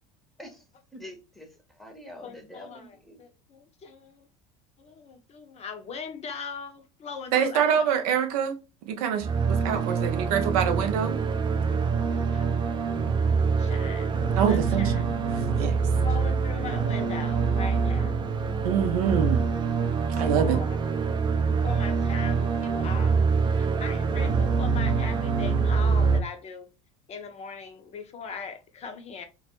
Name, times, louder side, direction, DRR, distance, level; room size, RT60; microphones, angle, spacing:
voice 1, 0.9-1.5 1.8-3.2, left 1 dB, ahead, 0.7 m, -45 dB
voice 2, 2.2-4.3 4.8-7.8 12.1-12.5 13.4-15.0 16.0-18.2 20.1-20.8 21.6-26.7 27.1-29.2, left 5 dB, 35° left, 0.6 m, -40 dB
voice 3, 7.3-8.5 8.9-11.2 14.4-15.1 15.5-15.8 18.6-19.4 20.2-20.6, right 8 dB, 80° right, 0.5 m, -25 dB
sound 1, 9.2-26.2, right 5 dB, 25° right, 0.4 m, -25 dB
2.2 x 2.0 x 2.9 m
supercardioid pair, 90°, 19 cm